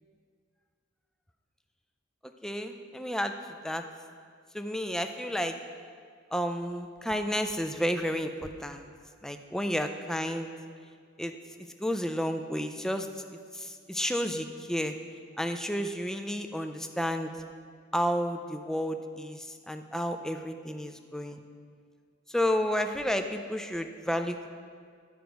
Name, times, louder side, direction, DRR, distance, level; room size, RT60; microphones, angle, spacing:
voice 1, 2.4-3.3 3.6-3.8 4.5-5.6 6.3-8.9 9.2-10.5 11.2-11.3 11.8-13.1 13.5-14.9 15.4-17.3 17.9-21.4 22.3-24.5, equal, 5° left, 6 dB, 0.3 m, -31 dB
11.0 x 4.5 x 5.2 m, 2.1 s
head